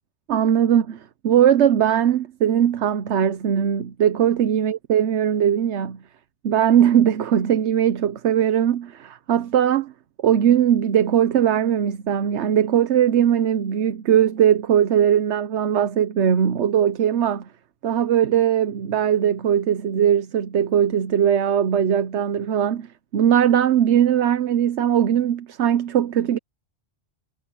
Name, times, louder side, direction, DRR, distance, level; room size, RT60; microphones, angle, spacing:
voice 1, 0.3-6.0 6.4-9.9 10.2-17.5 17.8-22.9 23.1-26.4, right 9 dB, 80° right, 1.1 m, -20 dB
omnidirectional pair, 1.2 m